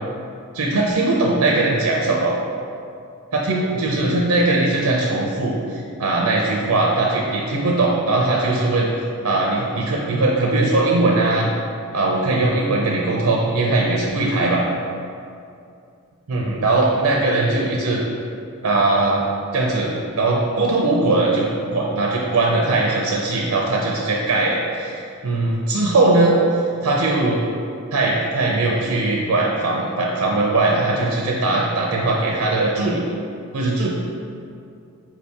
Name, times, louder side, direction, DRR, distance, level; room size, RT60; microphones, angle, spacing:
voice 1, 0.5-2.4 3.3-8.9 9.2-11.5 11.9-14.6 16.3-18.0 18.6-19.2 19.5-27.4 27.9-33.0 33.5-33.9, right 2 dB, 85° right, -2 dB, 0.5 m, -20 dB
4.8 x 2.7 x 3.5 m, 2.5 s
head